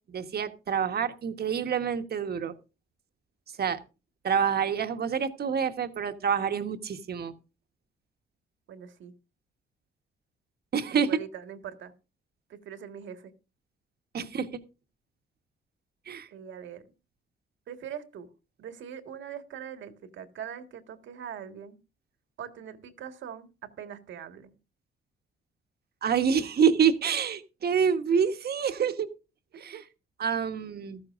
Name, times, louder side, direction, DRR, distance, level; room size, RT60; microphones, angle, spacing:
voice 1, 0.1-2.5 3.6-3.8 4.2-7.3 10.7-11.1 14.1-14.5 16.1-16.3 26.0-29.1 29.6-29.8 30.2-31.0, right 7 dB, 50° right, 8 dB, 1.4 m, -27 dB
voice 2, 8.7-9.1 10.9-11.9 12.5-13.3 14.1-14.3 16.3-16.9 17.7-18.3 18.6-21.8 22.4-24.5 29.5-29.8, right 8 dB, 70° right, 8 dB, 1.7 m, -42 dB
14.5 x 13.5 x 2.5 m, 0.30 s
cardioid pair, 90°, 20 cm